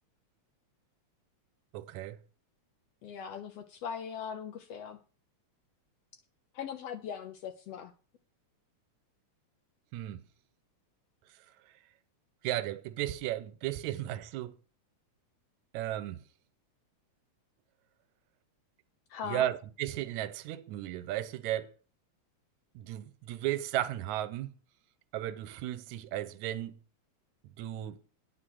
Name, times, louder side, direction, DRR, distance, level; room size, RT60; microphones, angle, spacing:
voice 1, 1.7-2.2 9.9-10.2 12.4-14.6 15.7-16.2 19.2-21.7 22.8-24.5 25.1-26.8 27.4-28.0, right 13 dB, 85° right, 2.0 m, -35 dB
voice 2, 3.0-5.0 6.5-7.9 19.1-19.5, left 7 dB, 70° left, 1.6 m, -40 dB
10.0 x 6.2 x 6.2 m
omnidirectional pair, 3.4 m